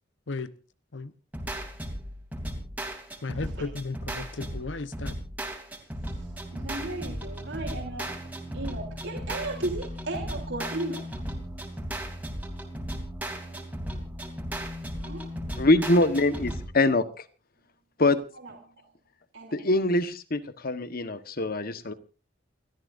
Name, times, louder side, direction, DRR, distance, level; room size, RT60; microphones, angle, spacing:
sound 1, 1.3-16.7, equal, 10° right, 3.1 m, -36 dB
voice 1, 3.2-5.1, left 3 dB, 75° left, 0.9 m, -34 dB
voice 2, 6.1-11.1 13.5-13.6 15.0-15.3 18.3-18.8 19.3-19.6, right 2 dB, 75° right, 3.4 m, -36 dB
voice 3, 15.6-17.0 18.0-18.2 19.5-21.9, left 2 dB, 55° left, 1.3 m, -24 dB
29.0 x 13.5 x 2.6 m
head